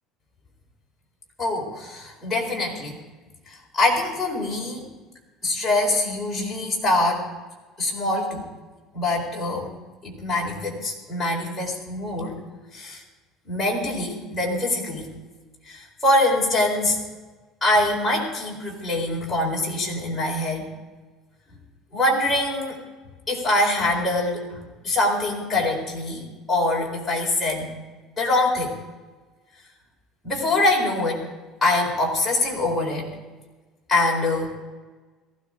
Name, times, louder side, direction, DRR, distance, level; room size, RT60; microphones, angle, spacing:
voice 1, 1.4-2.9 3.5-4.8 5.4-7.2 7.8-8.4 8.9-9.7 10.0-12.3 12.7-13.0 13.4-15.1 15.7-17.0 17.6-20.7 21.9-22.8 23.3-27.7 28.2-28.8 30.2-31.2 31.6-33.1 33.9-34.6, left 2 dB, 10° left, -4 dB, 4.5 m, -24 dB
18.5 x 15.5 x 3.8 m, 1.3 s
cardioid pair, 165°, 0 cm